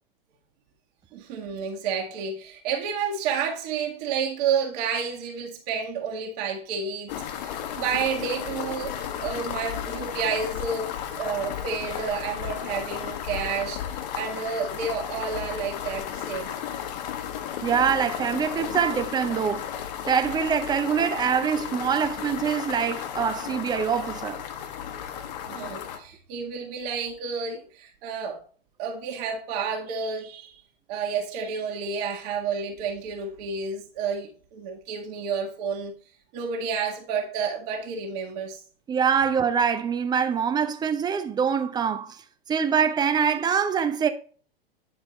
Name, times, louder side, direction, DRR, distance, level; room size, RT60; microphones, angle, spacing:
voice 1, 1.1-16.5 24.9-28.4 28.8-30.6 30.9-35.9 36.3-38.6, right 6 dB, 45° right, 1.7 m, -30 dB
sound 1, 7.1-26.0, left 9 dB, 45° left, 1.3 m, -34 dB
voice 2, 17.6-19.6 20.1-24.4 38.9-42.2 42.5-44.1, right 7 dB, 15° right, 0.7 m, -24 dB
9.3 x 4.4 x 4.1 m
hypercardioid pair, 110°, 29 cm